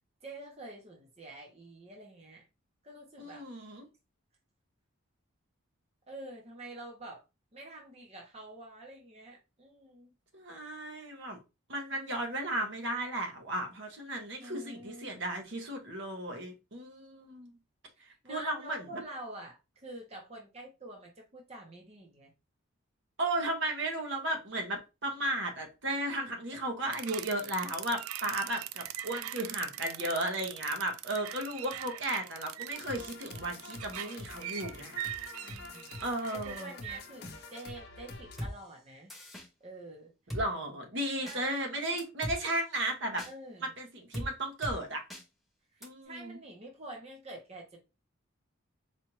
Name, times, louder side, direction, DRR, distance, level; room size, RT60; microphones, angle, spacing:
voice 1, 0.2-2.4 2.8-3.4 6.1-7.2 7.5-10.1 14.4-15.2 17.9-22.3 35.4-36.0 36.3-39.1 39.6-40.1 41.2-41.8 43.3-43.7 45.7-47.8, right 1 dB, 30° right, 0.8 m, -47 dB
voice 2, 3.2-3.8 10.3-11.4 11.7-17.5 18.0-18.8 23.2-35.0 36.0-36.7 40.3-43.2 43.8-45.0 45.8-46.4, right 1 dB, 60° right, 1.0 m, -35 dB
sound 1, 26.9-37.0, right 12 dB, 85° right, 0.3 m, -42 dB
sound 2, 32.7-38.5, left 3 dB, 50° left, 0.7 m, -47 dB
Drum kit, 38.4-38.5 39.1-39.5 40.3-40.4 41.3-41.4 42.0-42.4 43.2-43.3 44.1-44.3 44.6-44.8 45.1-45.2 45.8-45.9, equal, ahead, 0.7 m, -38 dB
4.3 x 2.4 x 3.0 m
head